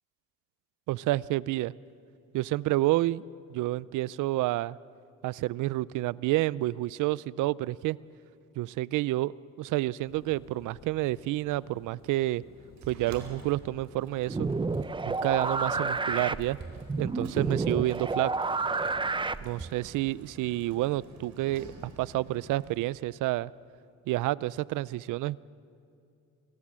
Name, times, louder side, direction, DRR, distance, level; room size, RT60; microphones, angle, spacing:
voice 1, 0.9-1.7 2.3-3.2 3.5-4.8 5.2-8.0 8.6-9.3 9.6-12.4 12.9-14.5 15.0-16.6 17.0-18.3 19.4-21.7 22.0-23.5 24.1-25.4, right 17 dB, 90° right, 21 dB, 0.5 m, -29 dB
Thunder, 10.0-21.4, left 5 dB, 60° left, 2.3 m, -57 dB
Sliding door, 12.8-22.8, right 4 dB, 70° right, 4.2 m, -50 dB
sound 1, 14.3-19.8, right 3 dB, 15° right, 0.7 m, -30 dB
28.5 x 18.5 x 7.5 m, 2.6 s
cardioid pair, 90°, 30 cm